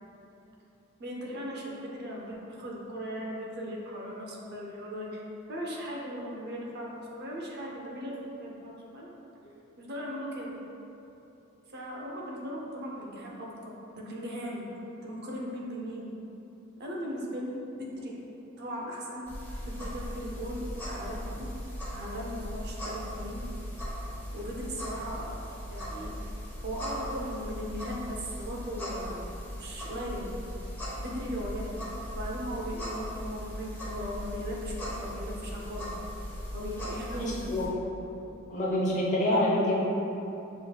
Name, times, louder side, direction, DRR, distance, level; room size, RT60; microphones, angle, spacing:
voice 1, 1.0-5.2 5.5-9.1 9.8-10.6 11.7-14.7 15.0-16.2 16.8-18.2 18.6-19.3 19.7-21.5 21.9-23.5 24.3-25.4 25.7-26.3 26.6-29.3 29.6-30.3 31.0-35.9 36.5-37.4, equal, 55° right, -3 dB, 0.6 m, -38 dB
sound 1, 19.3-37.7, equal, 10° left, 1.1 m, -38 dB
voice 2, 37.2-37.6 38.5-39.7, left 1 dB, 35° left, -6 dB, 0.8 m, -26 dB
6.2 x 3.2 x 2.3 m, 2.9 s
head